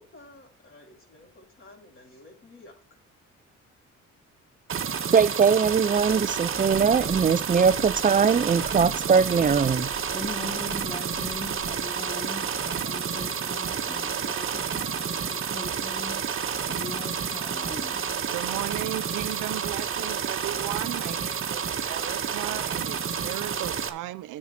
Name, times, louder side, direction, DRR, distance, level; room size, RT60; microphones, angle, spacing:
voice 1, 0.0-3.0, left 2 dB, 45° left, 6.3 m, -52 dB
sound 1, 4.7-23.9, right 7 dB, 45° right, 1.5 m, -30 dB
voice 2, 5.1-9.9, right 6 dB, 25° right, 0.6 m, -21 dB
Run, 5.8-11.8, left 3 dB, 70° left, 3.2 m, -45 dB
voice 3, 10.1-16.3 16.7-18.1, left 2 dB, 15° left, 1.1 m, -40 dB
voice 4, 18.3-24.4, right 16 dB, 90° right, 0.7 m, -35 dB
10.0 x 7.5 x 4.4 m
cardioid pair, 90°, 30 cm